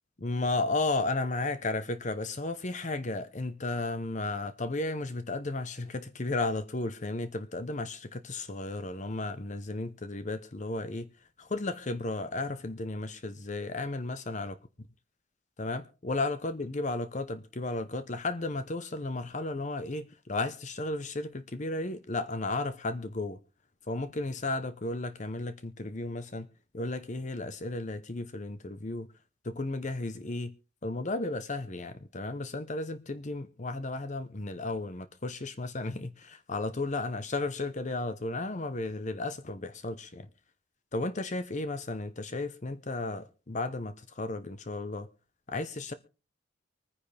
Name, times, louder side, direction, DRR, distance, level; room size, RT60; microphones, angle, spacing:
voice 1, 0.2-11.1 11.4-14.5 15.6-23.4 23.9-26.5 26.7-29.1 29.4-30.5 30.8-40.3 40.9-45.1 45.5-45.9, left 2 dB, 40° left, 0.8 m, -34 dB
24.5 x 10.0 x 3.4 m
head